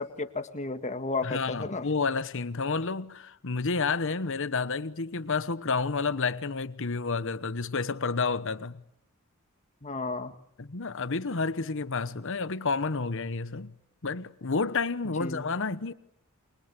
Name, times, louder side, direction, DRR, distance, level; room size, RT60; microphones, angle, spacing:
voice 1, 0.0-1.9 9.8-10.3 15.2-15.4, left 3 dB, 35° left, 1.8 m, -33 dB
voice 2, 1.2-8.8 10.6-13.8 14.0-15.9, left 4 dB, 60° left, 1.1 m, -30 dB
29.0 x 23.5 x 8.3 m
head